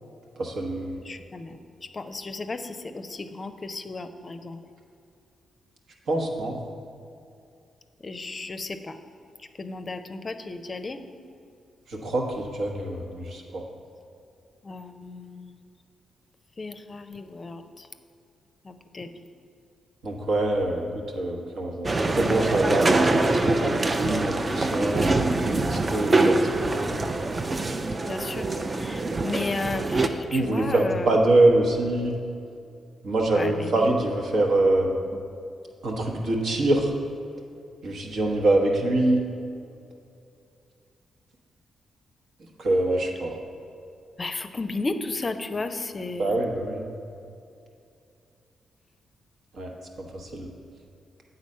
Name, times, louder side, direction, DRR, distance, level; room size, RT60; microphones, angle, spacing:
voice 1, 0.4-1.0 6.1-6.6 11.9-13.6 20.0-25.1 25.5-26.9 30.3-32.2 33.0-35.0 35.8-36.9 37.8-39.3 42.6-43.4 46.2-46.8 49.6-49.7 50.1-50.5, right 2 dB, 70° right, 1 dB, 1.0 m, -24 dB
voice 2, 1.1-1.6 1.9-4.6 8.0-9.0 9.6-11.0 14.6-15.5 16.6-17.9 18.6-19.1 28.1-28.5 28.8-31.1 33.3-33.7 44.2-46.4, left 3 dB, 40° left, 9 dB, 0.5 m, -34 dB
sound 1, 21.8-30.1, right 2 dB, 35° right, 0.4 m, -24 dB
8.2 x 4.0 x 5.4 m, 2.5 s
supercardioid pair, 50°, 0 cm